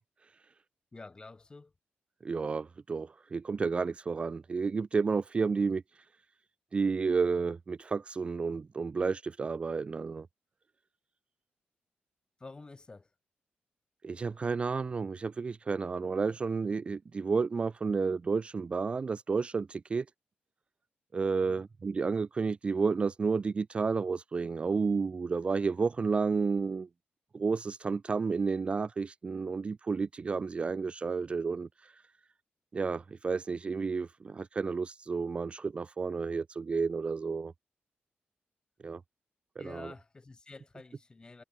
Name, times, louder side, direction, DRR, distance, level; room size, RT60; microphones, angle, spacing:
voice 1, 0.9-1.7 12.4-13.1 21.4-21.6 39.6-41.4, left 3 dB, 25° left, 7.7 m, -49 dB
voice 2, 2.2-5.8 6.7-10.3 14.0-20.1 21.1-26.9 27.3-32.0 32.7-37.5 38.8-39.0 39.6-39.9, right 4 dB, 30° right, 0.4 m, -31 dB
wide cardioid pair, 140°, 4 cm